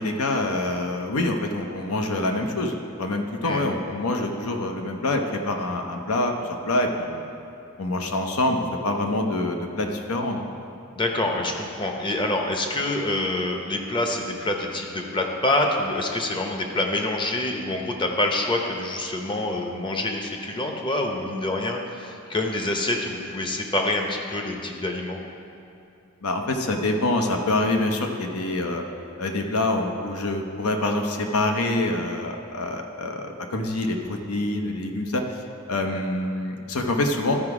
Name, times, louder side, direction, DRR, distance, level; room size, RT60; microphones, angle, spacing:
voice 1, 0.0-7.3 7.8-10.5 26.2-28.8 29.2-35.4 35.7-37.4, left 2 dB, 80° left, 4 dB, 0.8 m, -26 dB
voice 2, 10.9-25.2, left 2 dB, 20° left, 2 dB, 0.7 m, -26 dB
13.0 x 4.9 x 4.9 m, 2.6 s
head